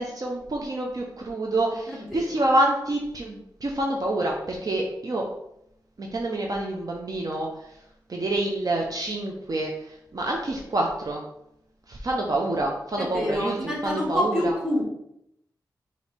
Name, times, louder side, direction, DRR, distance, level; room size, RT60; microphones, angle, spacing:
voice 1, 0.0-5.3 6.0-7.5 8.1-11.2 11.9-14.5, right 1 dB, 50° right, 0 dB, 0.6 m, -27 dB
voice 2, 1.9-2.5 13.0-14.8, equal, 5° right, -3 dB, 1.5 m, -28 dB
5.1 x 2.7 x 3.3 m, 0.77 s
wide cardioid pair, 85°, 8 cm